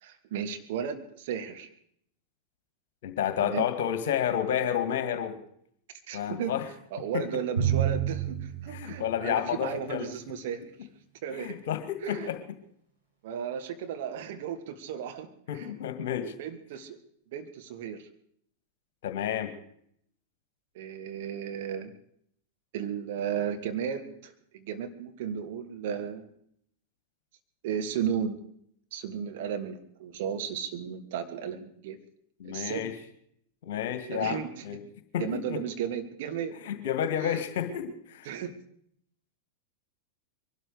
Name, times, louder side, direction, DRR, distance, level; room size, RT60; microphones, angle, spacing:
voice 1, 0.0-1.7 3.4-3.6 6.1-6.5 6.9-10.6 11.2-11.6 12.0-12.4 13.2-15.3 15.5-15.7 16.4-17.0 17.3-18.1 20.8-21.9 22.7-26.3 27.6-28.4 28.9-32.0 32.4-32.9 34.1-34.6 35.2-36.6 37.2-37.4 38.3-38.5, right 8 dB, 50° right, 6 dB, 1.8 m, -34 dB
voice 2, 3.0-5.4 6.1-6.7 7.1-7.3 8.7-10.1 11.3-12.4 15.5-16.3 19.0-19.5 32.4-32.9 33.6-34.8 35.1-35.6 36.6-38.3, left 9 dB, 55° left, 9 dB, 2.0 m, -30 dB
Drum, 7.6-9.9, right 10 dB, 80° right, 5.5 m, -30 dB
22.5 x 12.5 x 4.9 m, 0.68 s
figure-of-eight pair, 90°, 0 cm